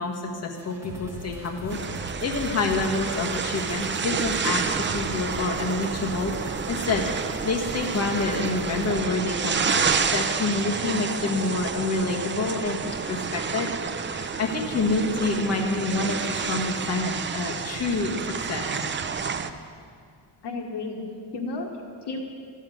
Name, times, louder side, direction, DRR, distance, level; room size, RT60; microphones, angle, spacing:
voice 1, 0.0-13.7 14.1-18.6, left 3 dB, 35° left, 0 dB, 1.5 m, -28 dB
sound 1, 0.6-9.0, right 1 dB, 5° right, 2.1 m, -40 dB
sound 2, 1.7-19.5, right 6 dB, 25° right, 0.5 m, -29 dB
voice 2, 20.4-22.2, left 3 dB, 70° left, 3 dB, 1.6 m, -33 dB
13.5 x 7.3 x 9.0 m, 2.2 s
wide cardioid pair, 140°, 42 cm